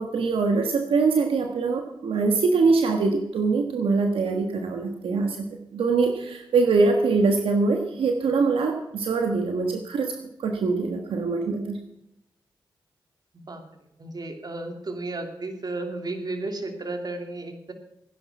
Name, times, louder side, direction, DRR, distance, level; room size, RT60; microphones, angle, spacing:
voice 1, 0.0-5.5 5.7-10.1 10.4-11.8, right 4 dB, 80° right, 4 dB, 1.4 m, -23 dB
voice 2, 14.0-17.7, right 2 dB, 45° right, 5 dB, 2.8 m, -33 dB
15.5 x 10.5 x 6.0 m, 0.85 s
cardioid pair, 50°, 9 cm